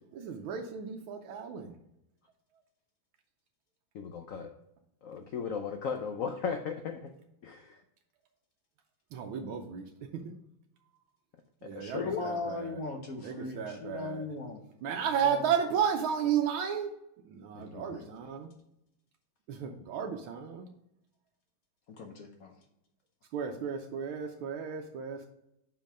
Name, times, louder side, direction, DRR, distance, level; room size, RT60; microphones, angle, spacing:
voice 1, 0.1-1.7 9.1-9.8 10.2-10.3 11.6-12.7 13.2-14.2 14.8-16.9 17.3-18.5 19.5-20.7 23.3-25.3, right 7 dB, 85° right, 3 dB, 1.5 m, -33 dB
voice 2, 3.9-4.5 5.0-7.1 7.4-7.8 11.7-12.2 17.5-18.0, left 6 dB, 85° left, 5 dB, 0.7 m, -36 dB
voice 3, 11.8-14.6 15.2-15.5 17.7-18.1 21.9-22.5, left 3 dB, 55° left, 3 dB, 1.1 m, -39 dB
5.5 x 5.3 x 4.9 m, 0.81 s
omnidirectional pair, 2.2 m